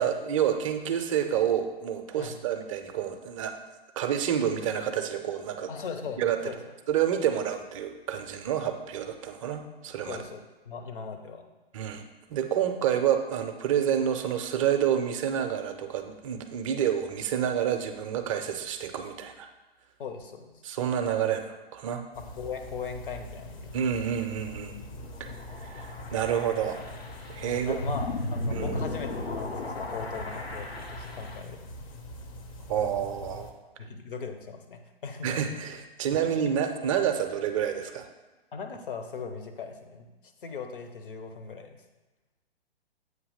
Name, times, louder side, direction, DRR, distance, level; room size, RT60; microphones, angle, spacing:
voice 1, 0.0-3.5 4.0-5.7 6.2-6.4 6.9-10.2 11.7-12.0 12.3-19.5 20.6-22.0 23.7-24.7 25.2-25.3 25.6-26.8 27.3-27.8 28.5-28.9 32.7-33.5 35.2-38.1, right 9 dB, 35° right, 6 dB, 0.6 m, -28 dB
voice 2, 5.7-6.6 10.1-11.5 20.0-20.6 22.2-23.8 27.4-31.6 33.8-35.6 36.2-36.3 38.5-41.8, left 5 dB, 55° left, 5 dB, 0.9 m, -39 dB
sound 1, 22.1-33.5, left 1 dB, 35° left, 0.7 m, -44 dB
sound 2, 24.5-31.4, left 2 dB, 80° left, 1.1 m, -36 dB
7.9 x 2.8 x 5.5 m, 1.2 s
figure-of-eight pair, 125°, 31 cm